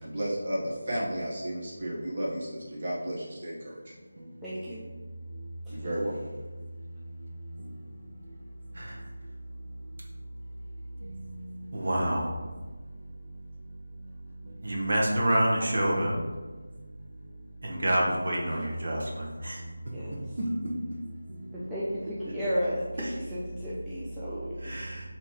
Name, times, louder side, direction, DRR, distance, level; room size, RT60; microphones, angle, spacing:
voice 1, 0.0-3.9 5.7-6.2, equal, 35° right, -6 dB, 1.3 m, -33 dB
voice 2, 4.4-4.8 5.7-5.8 19.9-20.2 21.5-24.7, equal, 5° right, -12 dB, 0.5 m, -34 dB
voice 3, 11.7-12.2 14.6-16.1 17.6-19.0 19.4-19.6 24.6-25.0, right 1 dB, 55° right, -2 dB, 1.1 m, -27 dB
5.4 x 2.9 x 3.1 m, 1.3 s
figure-of-eight pair, 170°, 0 cm